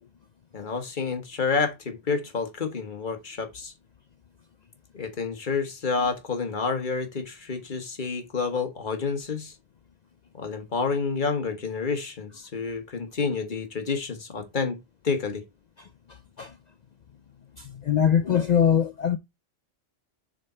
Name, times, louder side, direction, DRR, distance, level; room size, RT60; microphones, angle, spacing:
voice 1, 0.5-3.7 4.9-9.5 10.4-14.8 15.0-15.4, left 4 dB, 45° left, 1.4 m, -29 dB
voice 2, 17.6-19.2, left 8 dB, 65° left, 0.4 m, -22 dB
6.5 x 3.8 x 4.3 m
omnidirectional pair, 1.2 m